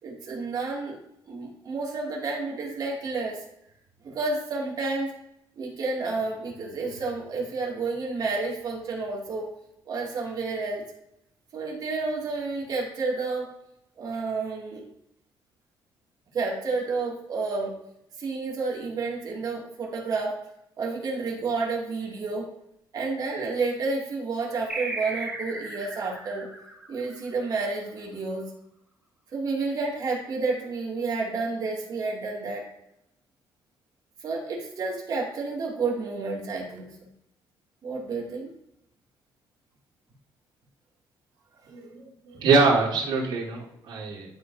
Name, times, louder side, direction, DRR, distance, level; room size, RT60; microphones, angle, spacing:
voice 1, 0.0-1.0 1.3-3.4 4.0-5.1 5.6-9.5 9.8-10.8 11.5-13.5 14.0-14.8 16.3-17.7 18.2-20.4 20.8-22.5 22.9-26.5 26.9-28.4 29.3-32.7 34.2-37.1 37.8-38.5, right 3 dB, 50° right, -2 dB, 2.6 m, -30 dB
sound 1, 24.7-27.7, right 2 dB, 10° right, 1.5 m, -36 dB
voice 2, 41.7-44.3, right 4 dB, 65° right, -10 dB, 3.2 m, -24 dB
12.0 x 5.2 x 2.8 m, 0.80 s
cardioid pair, 135°, 8 cm